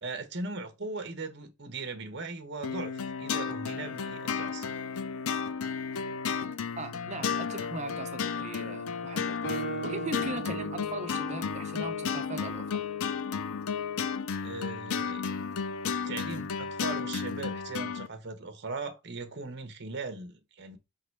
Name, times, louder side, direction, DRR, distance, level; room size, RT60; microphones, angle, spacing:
voice 1, 0.0-4.7 14.4-15.3 16.0-20.8, right 3 dB, 50° right, 1.1 m, -39 dB
sound 1, 2.6-18.1, left 6 dB, 85° left, 0.5 m, -33 dB
voice 2, 6.8-12.9, right 3 dB, 30° right, 0.7 m, -39 dB
Guitar, 9.4-13.1, right 2 dB, 50° left, 1.6 m, -39 dB
5.2 x 3.9 x 4.7 m
head